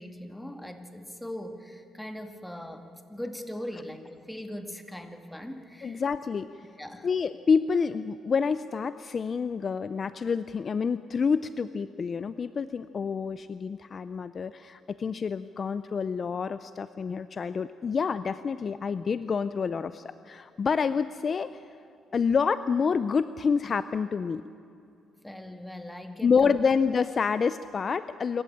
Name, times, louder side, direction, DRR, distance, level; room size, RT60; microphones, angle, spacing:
voice 1, 0.0-6.0 6.8-7.1 25.2-26.6, left 1 dB, 5° left, 6 dB, 2.0 m, -40 dB
voice 2, 5.8-6.6 7.0-21.5 22.1-24.4 26.2-28.4, left 5 dB, 45° left, 13 dB, 0.5 m, -28 dB
26.0 x 14.0 x 8.8 m, 2.6 s
cardioid pair, 90°, 0 cm